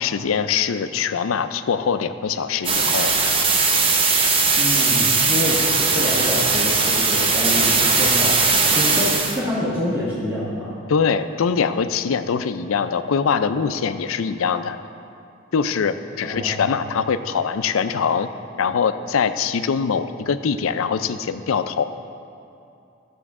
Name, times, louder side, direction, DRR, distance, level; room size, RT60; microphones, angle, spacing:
voice 1, 0.0-3.1 10.9-14.8 15.5-18.3 18.6-21.8, left 6 dB, 85° left, 11 dB, 0.4 m, -23 dB
sound 1, 2.6-9.4, right 4 dB, 25° right, 0.6 m, -19 dB
voice 2, 4.6-5.6 5.9-8.4 8.7-10.7 16.2-16.8, left 1 dB, 10° right, -10 dB, 1.4 m, -26 dB
13.0 x 7.0 x 3.6 m, 2.7 s
head